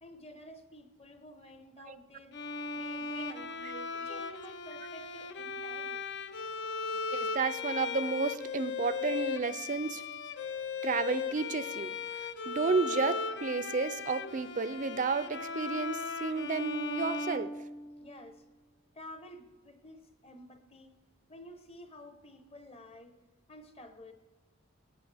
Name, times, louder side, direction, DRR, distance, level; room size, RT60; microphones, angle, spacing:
voice 1, 0.0-2.4 2.7-6.0 18.0-18.4 18.9-21.0 21.3-23.2 23.5-24.1, left 1 dB, 25° left, 8 dB, 0.9 m, -51 dB
Bowed string instrument, 2.3-18.2, left 4 dB, 50° left, 0.5 m, -37 dB
voice 2, 3.7-4.2 7.1-10.0 10.8-17.5, right 4 dB, 35° right, 13 dB, 0.4 m, -32 dB
19.5 x 9.5 x 3.4 m, 1.2 s
head